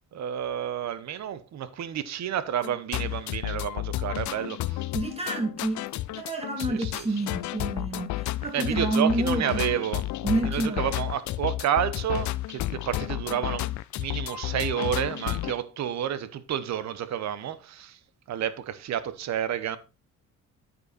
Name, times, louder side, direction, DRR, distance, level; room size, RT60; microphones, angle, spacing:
voice 1, 0.1-4.8 6.6-7.1 8.5-10.1 10.4-13.7 14.0-18.0 18.3-19.8, right 9 dB, 65° right, 0.9 m, -30 dB
sound 1, 2.6-15.5, left 16 dB, 70° left, 0.5 m, -32 dB
voice 2, 4.9-5.8 6.1-9.6 10.2-10.9, right 2 dB, 20° right, 2.7 m, -28 dB
9.3 x 5.5 x 4.2 m
cardioid pair, 90°, 30 cm